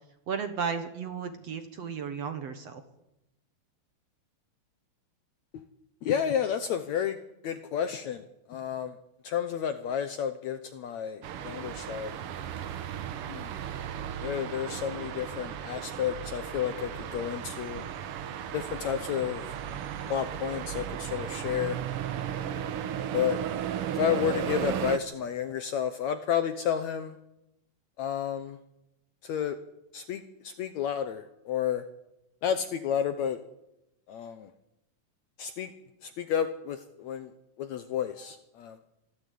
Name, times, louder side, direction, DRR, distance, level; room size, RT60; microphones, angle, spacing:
voice 1, 0.3-2.8, right 6 dB, 55° right, 8 dB, 2.0 m, -34 dB
voice 2, 6.0-7.2 7.4-9.0 9.2-12.1 13.3-13.6 14.2-17.8 18.5-19.6 20.1-21.8 23.1-23.4 23.9-27.2 28.0-28.6 29.2-29.6 29.9-31.8 32.4-33.4 34.1-34.5 35.4-35.7 36.0-37.3 37.6-38.8, left 8 dB, 70° left, 10 dB, 1.8 m, -31 dB
sound 1, 11.2-25.0, right 9 dB, 80° right, 1.2 m, -35 dB
26.0 x 13.0 x 8.4 m, 0.89 s
omnidirectional pair, 4.1 m